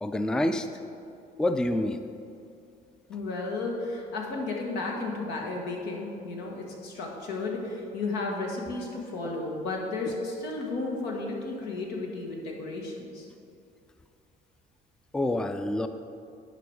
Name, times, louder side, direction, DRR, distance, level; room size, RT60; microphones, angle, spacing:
voice 1, 0.0-0.7 1.4-2.0 15.1-15.9, left 1 dB, 5° left, 8 dB, 0.3 m, -27 dB
voice 2, 3.1-13.2, left 3 dB, 90° left, 0 dB, 1.6 m, -33 dB
10.5 x 5.1 x 4.7 m, 2.6 s
cardioid pair, 110°, 17 cm